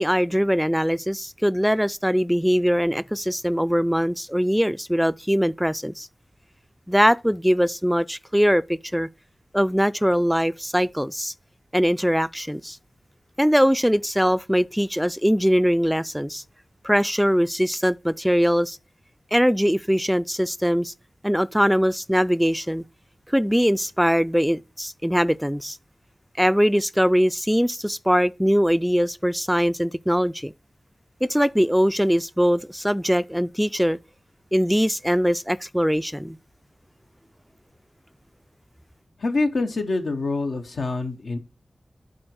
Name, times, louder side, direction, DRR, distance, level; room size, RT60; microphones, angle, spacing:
voice 1, 0.0-6.1 6.9-9.1 9.5-11.3 11.7-12.8 13.4-16.4 16.8-18.8 19.3-20.9 21.2-22.8 23.3-25.8 26.4-30.5 31.2-34.0 34.5-36.4, equal, ahead, 0.3 m, -21 dB
voice 2, 39.2-41.4, left 3 dB, 85° left, 1.1 m, -25 dB
7.8 x 4.0 x 6.2 m
cardioid pair, 45°, 0 cm